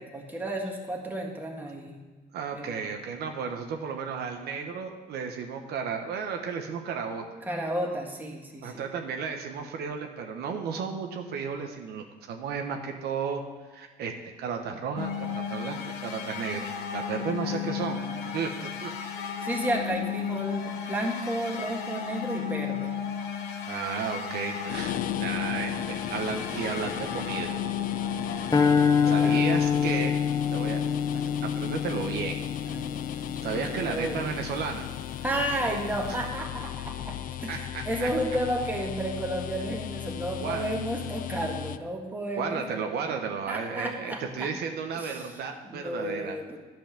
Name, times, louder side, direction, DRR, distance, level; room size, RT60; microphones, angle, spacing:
voice 1, 0.0-2.1 2.5-2.8 7.4-8.8 17.4-18.4 19.4-22.9 29.0-29.4 32.7-34.3 35.2-42.8 43.5-44.5 44.9-45.3 45.6-46.6, right 1 dB, 10° right, 0 dB, 1.8 m, -33 dB
voice 2, 2.3-7.2 8.6-13.4 13.7-14.1 14.4-18.0 18.3-18.9 23.6-27.5 29.1-30.1 30.5-32.4 33.4-34.8 36.1-36.2 37.5-38.1 40.4-40.7 42.4-46.6, right 6 dB, 70° right, 4 dB, 1.0 m, -33 dB
sound 1, 15.0-28.6, left 8 dB, 75° left, 1.1 m, -34 dB
sound 2, 24.7-41.8, left 11 dB, 55° left, 0.4 m, -37 dB
sound 3, 28.5-34.9, left 7 dB, 20° left, 0.7 m, -26 dB
10.5 x 5.6 x 6.8 m, 1.4 s
cardioid pair, 110°, 17 cm